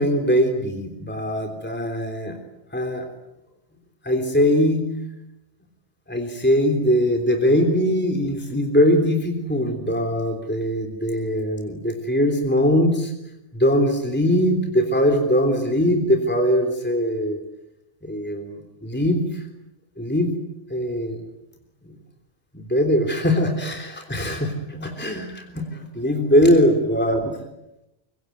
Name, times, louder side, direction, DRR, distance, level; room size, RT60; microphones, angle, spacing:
voice 1, 0.0-2.3 2.7-3.0 4.0-4.9 6.1-13.1 13.5-17.4 18.0-19.4 20.0-20.3 20.7-21.2 22.5-27.4, equal, 10° left, 3 dB, 3.4 m, -21 dB
25.5 x 24.5 x 9.5 m, 0.89 s
omnidirectional pair, 1.3 m